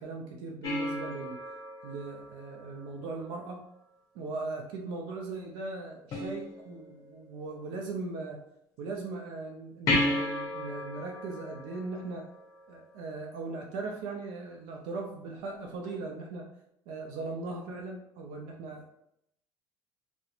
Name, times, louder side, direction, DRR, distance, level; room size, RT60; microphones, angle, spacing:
voice 1, 0.0-1.4 1.8-3.6 4.1-8.4 8.8-12.3 12.7-16.5 16.9-18.9, right 3 dB, 80° right, 1 dB, 0.4 m, -39 dB
sound 1, 0.6-3.2 6.1-7.1 9.9-12.8 15.8-15.9, left 2 dB, 40° left, 0.6 m, -34 dB
2.4 x 2.1 x 2.8 m, 0.78 s
cardioid pair, 160°, 9 cm